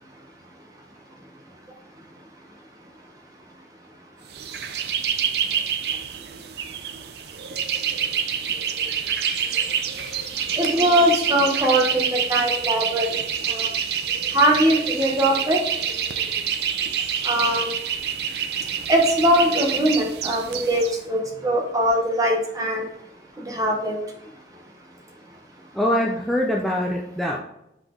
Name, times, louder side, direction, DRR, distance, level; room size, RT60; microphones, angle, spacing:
sound 1, 4.3-21.0, right 8 dB, 70° right, 0.5 m, -27 dB
voice 1, 9.9-10.6 25.7-27.4, equal, ahead, -2 dB, 0.4 m, -25 dB
voice 2, 10.6-13.1 13.5-13.7 14.3-15.6 17.2-17.7 18.9-22.9 23.4-24.0, equal, 20° right, 0 dB, 1.0 m, -21 dB
5.9 x 5.0 x 3.7 m, 0.83 s
head